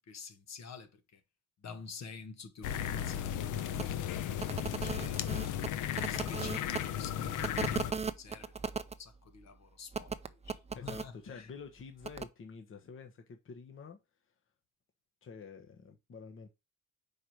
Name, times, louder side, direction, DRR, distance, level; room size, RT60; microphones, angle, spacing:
voice 1, 0.1-1.2 1.6-4.1 4.6-5.6 6.0-8.5 9.0-10.1 10.4-11.5, left 5 dB, 60° left, 1.4 m, -48 dB
sound 1, 2.6-7.9, left 10 dB, 85° left, 0.8 m, -35 dB
sound 2, 3.8-3.9 4.4-6.8 7.4-9.0 9.9-11.1 12.0-12.3, right 5 dB, 20° right, 0.5 m, -37 dB
voice 2, 10.7-14.0 15.2-16.5, left 5 dB, 45° left, 1.2 m, -49 dB
5.0 x 4.8 x 4.5 m
cardioid pair, 90°, 30 cm